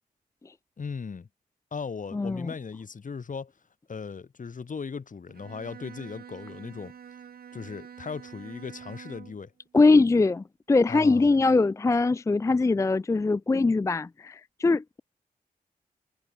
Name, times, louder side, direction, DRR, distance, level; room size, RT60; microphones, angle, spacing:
voice 1, 0.8-1.3 1.7-3.5 3.9-6.9 7.5-9.5 10.9-11.4, left 5 dB, 60° left, 3.1 m, -37 dB
voice 2, 2.1-2.5 9.7-15.0, left 3 dB, 20° left, 0.3 m, -22 dB
Bowed string instrument, 5.3-9.5, right 8 dB, 85° right, 3.3 m, -46 dB
cardioid pair, 55°, 15 cm